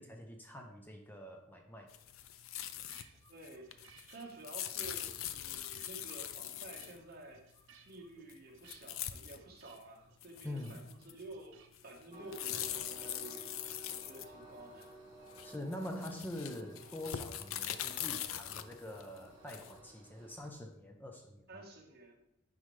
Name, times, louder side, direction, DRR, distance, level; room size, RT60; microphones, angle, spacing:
voice 1, 0.0-1.9 10.4-10.9 15.4-21.6, left 1 dB, 10° left, 3 dB, 0.5 m, -45 dB
sound 1, 1.9-3.0 3.3-7.0 8.3-8.4 8.7-9.4 9.8-9.9 10.2-11.3 11.7-14.8 15.3-19.8, left 11 dB, 85° left, 0.5 m, -42 dB
sound 2, 2.7-11.7, right 6 dB, 80° right, 0.9 m, -63 dB
voice 2, 3.3-7.4 7.8-13.5 13.9-14.9 21.5-22.2, right 2 dB, 50° right, 1 dB, 1.3 m, -51 dB
Train, 12.1-20.5, right 2 dB, 20° right, 1.5 m, -55 dB
9.8 x 5.4 x 3.2 m, 0.81 s
head